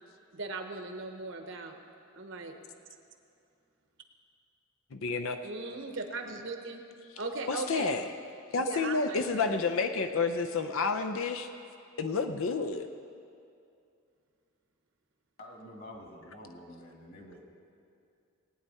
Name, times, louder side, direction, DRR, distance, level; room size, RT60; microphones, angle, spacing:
voice 1, 0.3-1.8 2.1-2.5 5.4-6.8 7.2-8.0 8.6-9.6, right 3 dB, 60° right, 5 dB, 1.0 m, -38 dB
voice 2, 4.9-5.4 7.5-8.0 8.5-11.5 12.0-12.9, left 4 dB, 75° left, 7 dB, 0.6 m, -30 dB
voice 3, 15.4-17.4, left 1 dB, 45° left, 0 dB, 2.1 m, -48 dB
19.5 x 9.2 x 4.2 m, 2.5 s
head